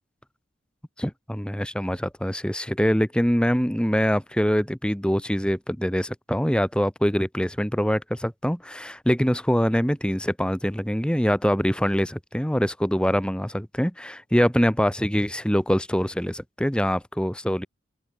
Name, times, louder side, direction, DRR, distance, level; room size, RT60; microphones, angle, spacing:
voice 1, 1.0-17.7, equal, 5° left, 1.7 m, -24 dB
head